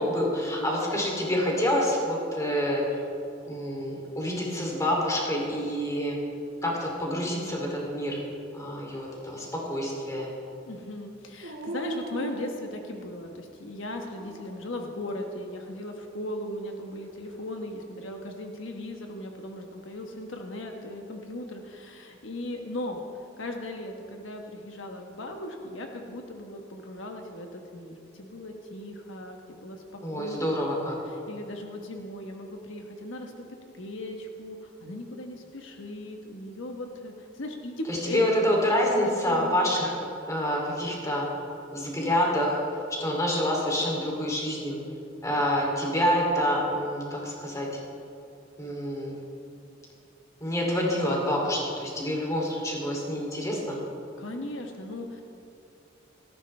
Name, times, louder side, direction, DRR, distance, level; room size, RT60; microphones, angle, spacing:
voice 1, 0.0-2.8 3.5-6.2 6.6-8.2 8.5-10.3 30.0-31.0 37.9-39.9 40.3-41.3 41.7-42.6 43.0-44.8 45.2-47.8 48.6-49.1 50.4-53.8, equal, 15° left, -2 dB, 2.8 m, -27 dB
voice 2, 0.6-1.0 10.6-30.4 31.1-33.5 33.7-38.2 38.9-39.7 54.2-55.2, left 1 dB, 80° left, 3 dB, 1.2 m, -38 dB
Dog, 11.4-13.3 14.0-14.8 17.0-17.9, right 1 dB, 85° right, 1.9 m, -40 dB
17.5 x 14.5 x 3.3 m, 2.6 s
head